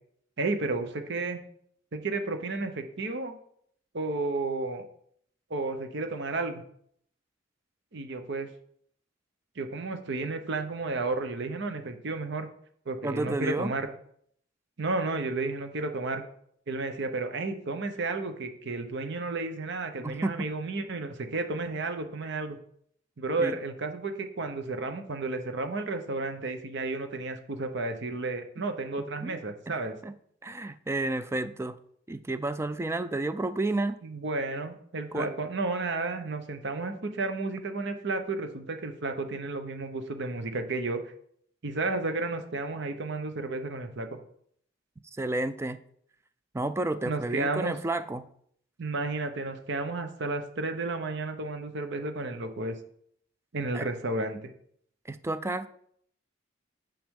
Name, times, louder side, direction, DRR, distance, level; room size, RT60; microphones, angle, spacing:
voice 1, 0.4-1.4 1.9-3.3 3.9-4.8 5.5-6.6 7.9-8.5 9.6-12.5 12.9-13.9 14.8-16.2 16.7-22.6 23.2-29.9 34.0-41.0 41.6-44.1 47.0-47.7 48.8-52.8 53.5-54.4, right 3 dB, 60° right, 0.9 m, -32 dB
voice 2, 13.0-13.7 20.0-20.5 23.4-23.6 29.2-29.4 29.7-30.1 30.4-31.8 32.1-34.0 35.1-35.3 45.2-45.8 46.5-48.3 53.7-53.9 55.1-55.7, right 2 dB, 15° right, 0.3 m, -31 dB
8.9 x 5.0 x 3.7 m
head